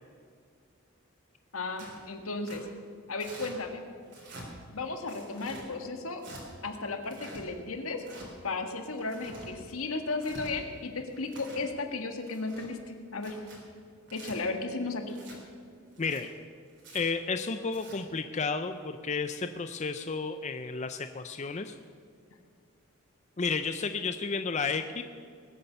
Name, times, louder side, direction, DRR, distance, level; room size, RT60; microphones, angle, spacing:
voice 1, 1.5-2.7 3.1-3.8 4.7-6.3 6.6-8.0 8.4-12.8 13.1-13.4 14.1-15.2, left 3 dB, 75° left, 5 dB, 1.7 m, -34 dB
Tearing, 1.8-2.0 2.4-2.6 3.2-3.5 4.1-4.5 5.1-5.6 6.2-6.4 7.0-7.4 8.0-8.3 8.9-9.5 10.1-10.5 11.1-11.6 12.2-12.7 13.2-13.6 14.1-14.3 15.1-15.4 15.9-16.2 16.8-17.0 17.6-18.0, right 2 dB, 55° right, 4.0 m, -47 dB
voice 2, 16.0-16.3 16.9-21.7 23.4-25.0, left 4 dB, 30° left, 8 dB, 0.5 m, -32 dB
21.0 x 8.5 x 6.8 m, 2.2 s
head